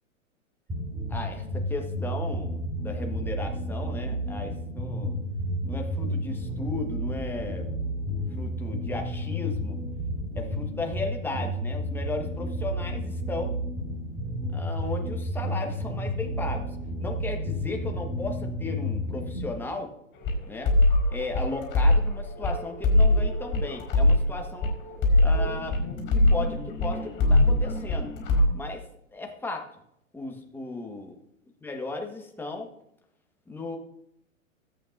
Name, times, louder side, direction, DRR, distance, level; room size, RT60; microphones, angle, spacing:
sound 1, 0.7-19.5, equal, 15° right, 3.2 m, -31 dB
voice 1, 1.1-5.1 5.7-7.7 8.3-9.8 10.3-13.6 14.5-19.9 20.4-20.7 21.1-24.7 25.2-25.8 26.1-28.1 28.5-28.9 29.1-29.7 30.1-31.1 31.6-32.7 33.5-33.8, left 3 dB, 5° left, 2 dB, 1.5 m, -35 dB
sound 2, 20.2-28.4, left 1 dB, 30° left, 4.5 m, -23 dB
19.5 x 8.8 x 2.7 m, 0.77 s
figure-of-eight pair, 105°, 40 cm